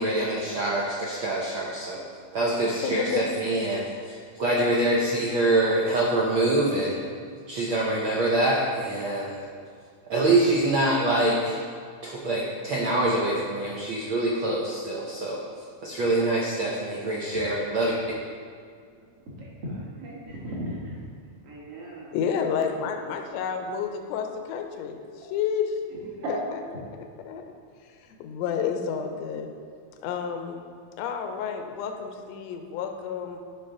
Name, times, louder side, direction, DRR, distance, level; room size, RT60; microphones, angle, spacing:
voice 1, 0.0-2.0 2.3-7.0 7.5-9.4 10.1-11.6 12.0-15.4 15.8-17.9, right 2 dB, 80° right, -4 dB, 1.1 m, -25 dB
voice 2, 2.8-3.3 22.1-26.8 27.3-27.4 27.8-29.5 30.0-30.7 31.0-33.4, left 7 dB, 75° left, 4 dB, 1.7 m, -30 dB
voice 3, 18.9-21.0 21.4-23.2 25.9-26.3 26.7-26.8, equal, 50° right, -5 dB, 2.6 m, -38 dB
11.0 x 6.0 x 3.8 m, 2.1 s
omnidirectional pair, 3.5 m